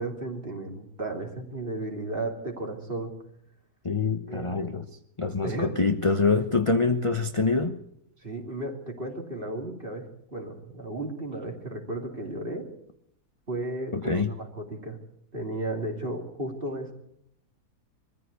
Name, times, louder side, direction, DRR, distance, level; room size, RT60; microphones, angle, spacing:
voice 1, 0.0-3.1 4.3-4.8 5.4-5.8 6.8-7.0 8.2-12.7 13.5-15.0 15.3-16.9, right 2 dB, 35° right, 2 dB, 3.1 m, -34 dB
voice 2, 3.8-4.9 5.2-7.8 13.9-14.3, left 4 dB, 25° left, 7 dB, 0.8 m, -25 dB
22.5 x 14.5 x 8.3 m, 0.73 s
omnidirectional pair, 1.7 m